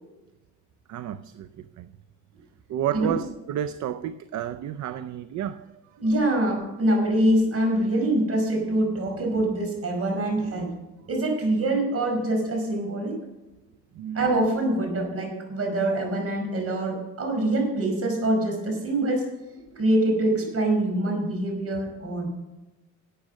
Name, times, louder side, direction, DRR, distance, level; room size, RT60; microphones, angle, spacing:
voice 1, 0.9-1.9 2.7-5.7 14.0-14.5, right 10 dB, 70° right, 0.6 m, -31 dB
voice 2, 6.0-10.7 11.1-13.2 14.1-19.2 19.7-22.3, right 1 dB, 50° right, 5.2 m, -24 dB
12.0 x 8.5 x 6.4 m
cardioid pair, 90°, 30 cm